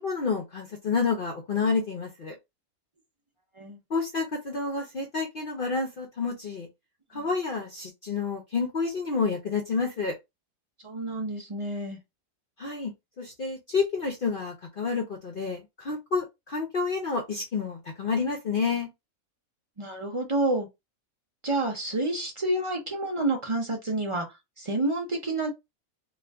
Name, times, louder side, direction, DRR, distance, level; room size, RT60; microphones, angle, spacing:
voice 1, 0.0-2.4 3.9-6.7 7.1-10.2 12.6-12.9 13.2-18.9, left 4 dB, 60° left, 0.6 m, -29 dB
voice 2, 10.8-12.0 19.8-20.7 21.4-24.3 24.6-25.5, right 2 dB, 35° right, 0.5 m, -29 dB
2.4 x 2.3 x 3.4 m
omnidirectional pair, 1.5 m